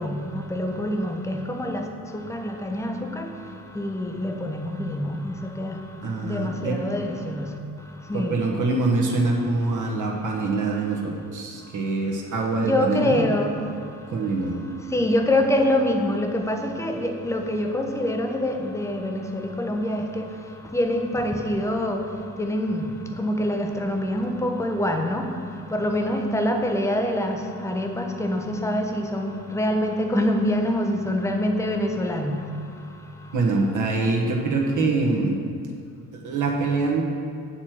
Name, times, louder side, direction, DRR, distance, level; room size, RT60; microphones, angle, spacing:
voice 1, 0.0-1.9 2.1-3.3 3.7-5.8 6.2-7.5 8.1-8.4 12.6-13.5 14.9-20.2 20.7-22.0 22.4-22.9 23.2-25.3 25.7-32.4, left 1 dB, 5° left, 3 dB, 0.9 m, -25 dB
voice 2, 6.0-6.8 8.1-13.2 14.1-14.6 33.3-35.4 36.2-37.0, right 3 dB, 40° right, 0 dB, 1.4 m, -24 dB
8.7 x 4.3 x 6.2 m, 2.3 s
figure-of-eight pair, 50°, 47 cm